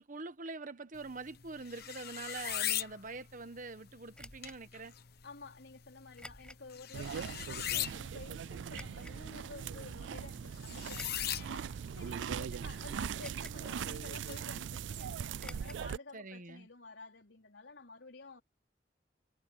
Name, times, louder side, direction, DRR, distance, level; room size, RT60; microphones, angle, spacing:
voice 1, 0.0-4.9 16.1-16.7, right 3 dB, 45° right, 1.2 m, -44 dB
sound 1, 0.9-14.4, left 12 dB, 60° left, 1.1 m, -42 dB
sound 2, 4.1-4.6 6.2-6.7 7.2-7.3 8.7-9.2 10.9-11.5 12.1-12.2 13.2-13.7 13.9-14.0 15.4-15.8 16.1-16.2 16.5-16.6, left 1 dB, 5° left, 6.8 m, -50 dB
voice 2, 5.2-18.4, left 3 dB, 85° left, 4.4 m, -52 dB
sound 3, 6.9-16.0, right 7 dB, 90° right, 0.4 m, -40 dB
head